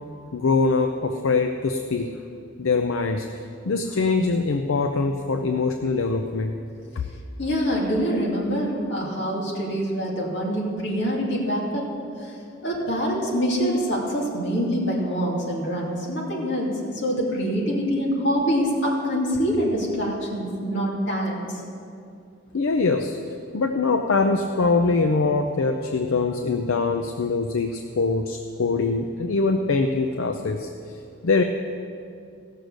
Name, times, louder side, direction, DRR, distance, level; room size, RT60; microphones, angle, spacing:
voice 1, 0.3-2.1 2.6-3.3 3.6-6.5 22.5-23.2 23.5-30.7 31.2-31.4, left 3 dB, 85° left, 6 dB, 0.6 m, -23 dB
voice 2, 7.4-11.9 12.6-21.5, equal, 65° left, -3 dB, 2.5 m, -25 dB
15.5 x 6.6 x 6.4 m, 2.5 s
head